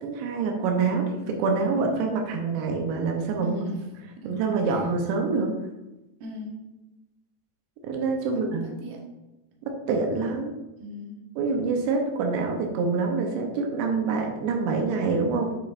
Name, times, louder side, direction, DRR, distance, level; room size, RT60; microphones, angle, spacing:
voice 1, 0.0-3.6 4.2-5.5 7.8-8.7 9.7-10.6 11.4-15.5, right 4 dB, 85° right, 2 dB, 3.1 m, -26 dB
voice 2, 3.4-3.8 4.2-4.3 4.6-4.9 6.2-6.6 8.3-9.0 10.8-11.2, left 1 dB, 65° right, -1 dB, 2.8 m, -38 dB
9.6 x 5.2 x 2.5 m, 1.0 s
omnidirectional pair, 4.9 m